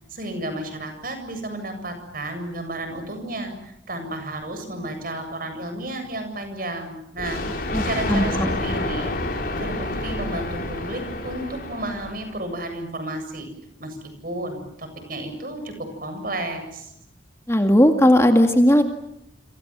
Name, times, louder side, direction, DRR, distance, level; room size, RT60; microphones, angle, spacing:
voice 1, 0.1-9.1 9.6-13.5 13.8-15.7 16.0-16.9, right 1 dB, 50° right, 7 dB, 7.7 m, -32 dB
Thunder, 7.2-12.5, left 1 dB, 50° left, 4.6 m, -29 dB
voice 2, 7.7-8.6 17.5-18.8, equal, 15° left, 5 dB, 1.9 m, -17 dB
29.0 x 27.0 x 7.5 m, 0.78 s
head